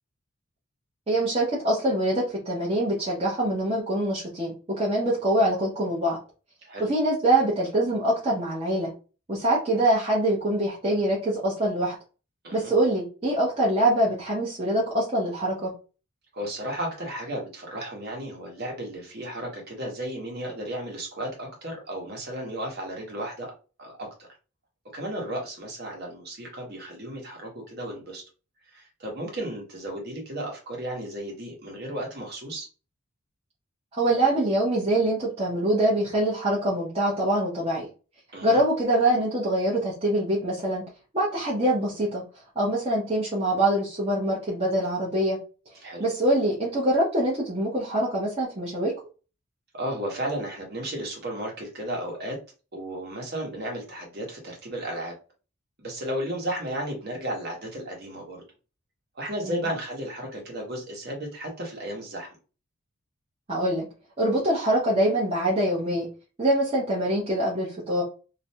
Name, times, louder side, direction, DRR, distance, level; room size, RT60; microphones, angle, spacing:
voice 1, 1.1-6.2 6.9-8.9 9.3-12.0 12.5-15.7 33.9-37.9 38.4-40.8 41.1-42.2 42.6-45.4 46.0-48.9 59.4-59.7 63.5-63.9 64.2-66.1 66.4-68.0, right 1 dB, 25° right, -5 dB, 0.6 m, -24 dB
voice 2, 16.3-23.5 23.8-24.3 24.9-28.2 28.7-32.7 38.3-38.6 45.8-46.0 49.7-52.4 52.7-55.1 55.8-58.4 59.1-62.4, right 1 dB, 50° right, 0 dB, 0.9 m, -34 dB
2.5 x 2.1 x 2.7 m, 0.34 s
head